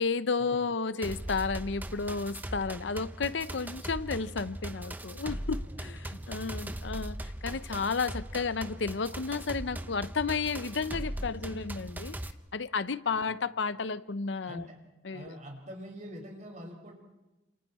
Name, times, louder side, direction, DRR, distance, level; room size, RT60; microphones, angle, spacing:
voice 1, 0.0-12.2 12.5-14.7 15.0-15.4, left 4 dB, 75° left, 15 dB, 0.7 m, -32 dB
sound 1, 1.0-12.3, right 1 dB, 10° right, 0.7 m, -39 dB
voice 2, 5.7-6.6 13.1-13.3 14.4-14.8 15.1-16.9, equal, 40° right, 2 dB, 5.2 m, -46 dB
29.0 x 27.5 x 4.3 m, 1.0 s
head